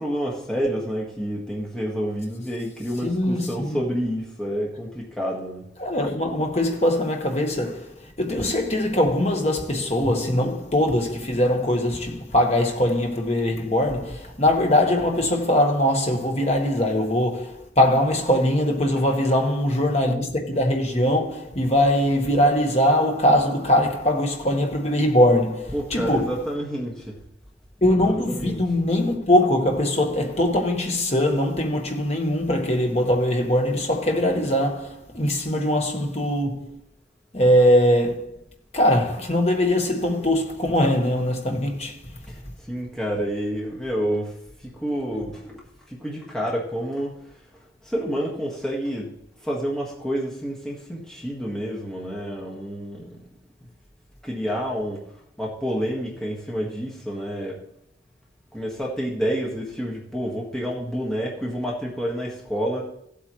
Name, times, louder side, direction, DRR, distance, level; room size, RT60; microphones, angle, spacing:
voice 1, 0.0-5.7 25.7-27.2 28.1-28.6 42.3-42.4 42.7-45.5 45.9-47.1 47.8-49.1 49.4-53.2 54.2-55.0 55.4-57.6 58.5-62.8, equal, 5° left, 1.6 m, -29 dB
voice 2, 3.0-3.8 5.8-26.4 27.8-36.8 37.3-38.4 38.7-42.0, left 1 dB, 35° left, 1.4 m, -21 dB
15.5 x 8.3 x 3.1 m
head